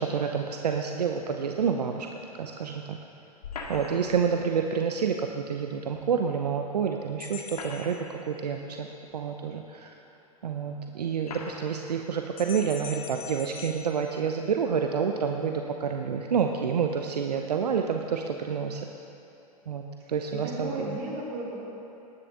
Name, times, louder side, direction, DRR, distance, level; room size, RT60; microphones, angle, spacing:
voice 1, 0.0-2.1 2.4-3.0 3.7-8.9 9.1-10.0 10.4-18.8 19.7-19.8 20.1-20.9, right 6 dB, 80° right, 4 dB, 0.8 m, -28 dB
sound 1, 3.4-4.2 5.9-6.0 7.3-8.2 9.1-9.2 10.2-10.3 11.2-11.7, left 4 dB, 75° left, 1.8 m, -40 dB
sound 2, 7.2-8.7 12.4-14.9, left 9 dB, 60° left, 1.2 m, -44 dB
voice 2, 20.0-21.6, right 2 dB, 40° right, -4 dB, 3.5 m, -35 dB
19.5 x 10.0 x 3.8 m, 2.9 s
hypercardioid pair, 105°, 20 cm